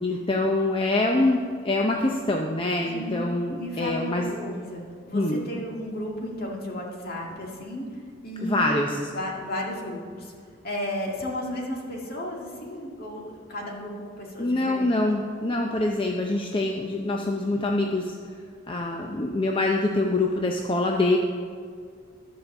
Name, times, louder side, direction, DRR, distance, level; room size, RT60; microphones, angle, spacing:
voice 1, 0.0-4.4 5.1-5.4 8.4-9.0 14.4-18.1 18.7-21.2, left 2 dB, 25° left, 1 dB, 0.6 m, -25 dB
voice 2, 2.8-3.2 3.6-7.9 8.2-8.7 9.1-10.3 10.6-13.9 14.2-14.9, left 1 dB, 55° left, -1 dB, 2.0 m, -33 dB
12.5 x 5.1 x 7.0 m, 2.1 s
head